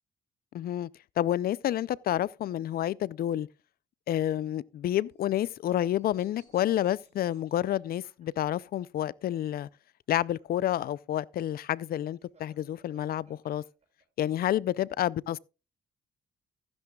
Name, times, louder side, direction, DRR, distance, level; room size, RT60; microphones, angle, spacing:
voice 1, 0.5-0.9 1.2-3.5 4.1-9.7 10.1-13.6 14.2-15.4, left 12 dB, 60° left, 0.5 m, -29 dB
sound 1, 4.7-8.8 10.0-14.2, right 3 dB, 40° right, 7.1 m, -66 dB
14.5 x 10.5 x 2.3 m
cardioid pair, 90°, 17 cm